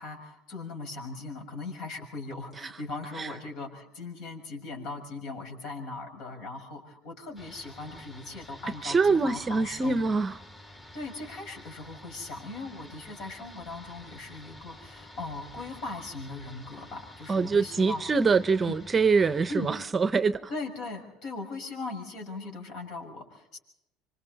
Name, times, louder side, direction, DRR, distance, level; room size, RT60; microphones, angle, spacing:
voice 1, 0.0-10.0 10.9-18.0 18.7-18.8 19.5-19.7 20.5-23.6, left 3 dB, 60° left, 6.6 m, -39 dB
sound 1, 7.4-19.9, left 1 dB, 15° left, 2.1 m, -49 dB
voice 2, 8.8-10.4 17.3-20.5, right 4 dB, 20° right, 0.8 m, -24 dB
27.0 x 25.0 x 4.1 m
cardioid pair, 130°, 0 cm